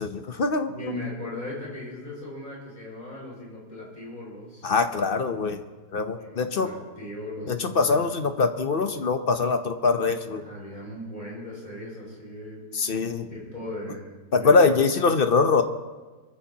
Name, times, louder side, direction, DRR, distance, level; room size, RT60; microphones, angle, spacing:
voice 1, 0.0-0.9 4.6-5.6 5.9-6.7 7.5-10.4 12.7-13.3 14.3-15.6, left 4 dB, 45° left, 7 dB, 0.8 m, -23 dB
voice 2, 0.7-4.7 6.2-8.0 10.3-12.6 13.3-14.7, left 1 dB, 30° left, -4 dB, 6.4 m, -38 dB
23.0 x 14.5 x 2.9 m, 1.3 s
omnidirectional pair, 1.7 m